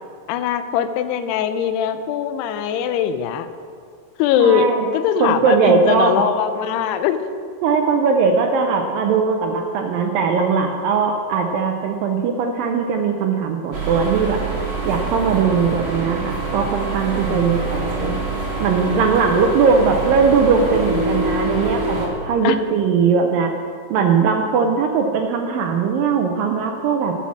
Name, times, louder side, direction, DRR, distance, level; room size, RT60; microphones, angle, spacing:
voice 1, 0.3-3.5 4.2-4.7 4.9-7.2 17.3-18.2 22.4-22.6, left 9 dB, 85° left, 10 dB, 2.7 m, -21 dB
voice 2, 4.4-4.9 5.2-6.2 7.6-14.4 14.9-18.2 18.6-23.5 23.9-27.1, right 5 dB, 80° right, 3 dB, 2.1 m, -19 dB
sound 1, 13.7-22.1, right 3 dB, 40° right, 1.6 m, -25 dB
12.5 x 5.7 x 7.2 m, 2.2 s
omnidirectional pair, 4.6 m